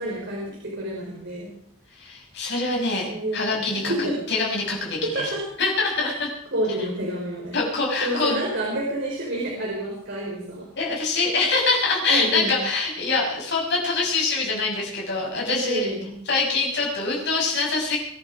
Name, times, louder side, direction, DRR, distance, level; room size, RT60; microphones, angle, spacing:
voice 1, 0.0-1.5 3.1-4.2 5.0-5.4 6.0-6.1 6.5-7.6 8.0-10.6 12.1-12.6 15.5-16.2, right 1 dB, 55° right, -4 dB, 4.8 m, -28 dB
voice 2, 2.0-5.3 5.6-6.3 7.5-8.4 10.8-15.9 16.3-18.0, left 3 dB, 55° left, -1 dB, 6.7 m, -24 dB
24.5 x 11.0 x 4.9 m, 0.68 s
head